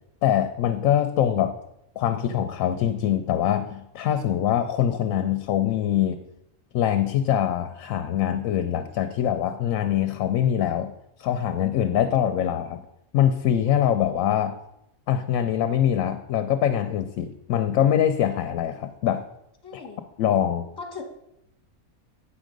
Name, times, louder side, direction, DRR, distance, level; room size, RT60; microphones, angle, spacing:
voice 1, 0.2-1.5 2.0-6.2 6.7-10.9 11.2-12.8 13.1-14.6 15.1-19.3 19.7-19.8 20.2-20.7, left 10 dB, 70° left, 9 dB, 0.9 m, -23 dB
voice 2, 19.6-20.0 20.8-21.0, left 4 dB, 15° left, 2 dB, 1.2 m, -38 dB
8.5 x 6.1 x 5.1 m, 0.81 s
omnidirectional pair, 1.5 m